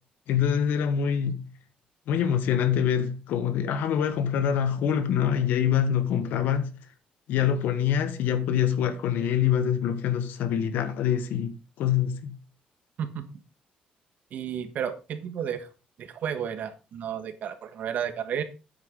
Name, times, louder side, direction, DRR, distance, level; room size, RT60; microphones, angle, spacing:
voice 1, 0.3-1.4 2.1-6.7 7.3-12.3, left 9 dB, 80° left, 1.4 m, -25 dB
voice 2, 14.3-15.7 16.0-18.4, right 8 dB, 60° right, 1.4 m, -32 dB
9.0 x 8.2 x 3.7 m
cardioid pair, 120°, 3 cm